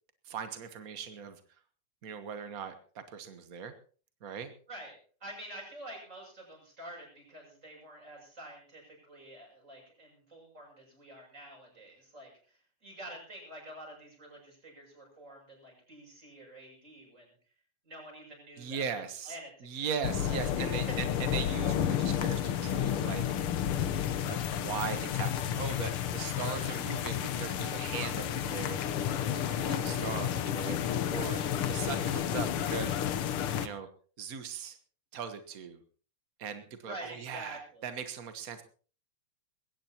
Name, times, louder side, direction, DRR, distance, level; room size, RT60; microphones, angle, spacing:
voice 1, 0.2-1.4 2.0-3.7 4.2-4.5 18.6-19.4 19.6-23.2 24.2-28.8 29.2-31.4 31.7-32.9 33.6-33.9 34.2-34.8 35.1-35.8 36.4-38.6, right 7 dB, 70° right, 8 dB, 0.8 m, -39 dB
voice 2, 4.7-17.3 17.8-18.9 19.2-19.9 20.2-21.0 31.1-31.4 36.8-37.9, right 1 dB, 25° right, 0 dB, 7.5 m, -48 dB
sound 1, 20.0-33.7, left 10 dB, 65° left, 1.4 m, -31 dB
21.0 x 17.0 x 2.9 m, 0.40 s
omnidirectional pair, 3.4 m